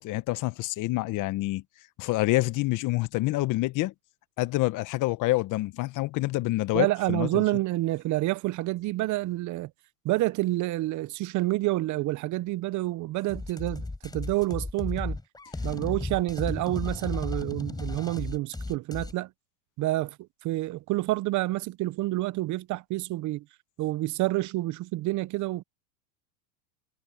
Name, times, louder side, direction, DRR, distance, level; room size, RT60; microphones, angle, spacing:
voice 1, 0.0-1.6 2.0-3.9 4.4-7.4, left 19 dB, 40° left, 1.1 m, -27 dB
voice 2, 6.7-9.7 10.0-15.2 15.6-19.3 19.8-20.2 20.4-23.4 23.8-25.6, right 17 dB, 40° right, 0.9 m, -28 dB
sound 1, 13.3-19.1, left 2 dB, 10° left, 4.9 m, -34 dB
hypercardioid pair, 110°, 47 cm